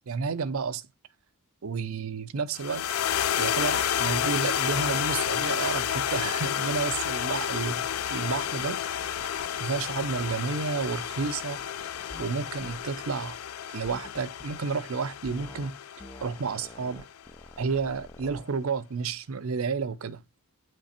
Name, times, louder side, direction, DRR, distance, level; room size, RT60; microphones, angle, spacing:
voice 1, 0.1-0.8 1.6-2.8 3.4-7.7 8.1-8.8 9.6-11.6 12.2-13.4 13.7-15.7 16.2-17.1 17.6-20.2, right 5 dB, 75° right, 0.5 m, -31 dB
sound 1, 2.6-17.0, left 9 dB, 80° left, 0.4 m, -30 dB
sound 2, 8.8-13.3, equal, 50° left, 1.9 m, -56 dB
sound 3, 12.1-12.3 12.6-12.8 13.8-14.6 15.2-15.7 16.0-18.5, left 1 dB, 10° left, 0.3 m, -47 dB
8.1 x 3.2 x 4.3 m
head